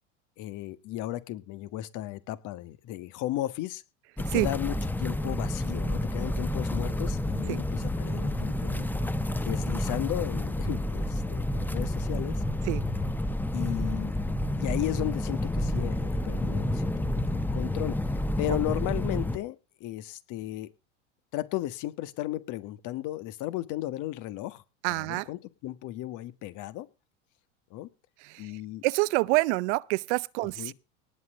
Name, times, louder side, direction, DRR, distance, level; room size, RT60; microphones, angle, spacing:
voice 1, 0.4-3.8 4.3-8.9 9.4-12.4 13.5-14.1 14.6-18.0 18.4-19.5 19.8-20.7 21.3-24.6 24.9-26.9 27.7-27.9 28.4-28.8 30.6-30.7, left 15 dB, 55° left, 1.6 m, -35 dB
sound 1, 4.2-19.4, left 1 dB, 5° left, 1.1 m, -29 dB
voice 2, 24.8-25.3 28.2-28.5 28.8-30.7, right 24 dB, 65° right, 0.8 m, -27 dB
19.0 x 8.0 x 3.8 m
hypercardioid pair, 100°, 37 cm